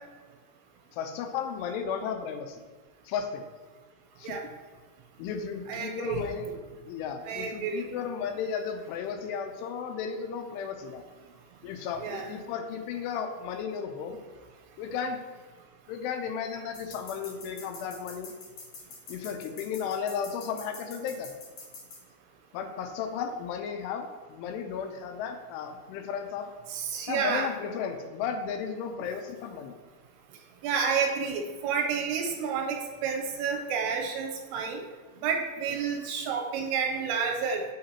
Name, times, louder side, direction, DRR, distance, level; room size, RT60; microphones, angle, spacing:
voice 1, 0.9-2.6 3.1-3.4 4.2-4.4 5.2-11.0 11.6-14.2 14.8-15.2 15.9-18.3 19.1-21.3 22.5-26.5 27.1-29.7, left 7 dB, 90° left, 6 dB, 2.7 m, -34 dB
voice 2, 5.7-6.2 7.2-8.0 12.0-12.3 26.7-27.5 30.6-34.8 35.2-37.6, right 6 dB, 85° right, 2 dB, 2.7 m, -30 dB
sound 1, 16.7-22.0, left 3 dB, 55° left, 2.4 m, -45 dB
6.6 x 5.9 x 2.8 m, 1.4 s
omnidirectional pair, 4.8 m